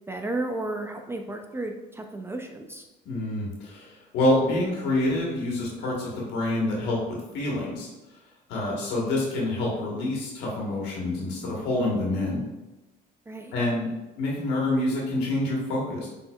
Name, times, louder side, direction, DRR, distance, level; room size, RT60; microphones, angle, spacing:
voice 1, 0.1-2.9 8.7-8.9 13.3-13.5, right 2 dB, 15° right, 3 dB, 0.4 m, -33 dB
voice 2, 3.0-7.9 8.5-12.4 13.5-13.9 14.2-16.1, left 1 dB, 90° left, -3 dB, 1.3 m, -27 dB
6.2 x 3.7 x 2.3 m, 1.1 s
cardioid pair, 110°, 17 cm